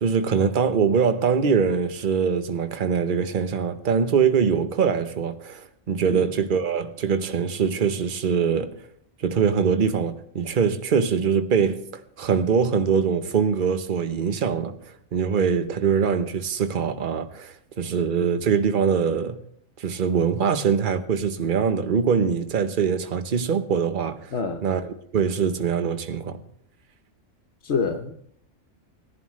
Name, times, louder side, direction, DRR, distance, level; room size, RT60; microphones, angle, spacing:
voice 1, 0.0-8.7 9.2-14.8 15.1-19.4 19.8-24.3 24.6-26.4, right 6 dB, 45° right, 1.0 m, -23 dB
voice 2, 24.3-24.6 27.6-28.1, left 5 dB, 65° left, 1.2 m, -26 dB
18.5 x 11.0 x 3.2 m
omnidirectional pair, 1.3 m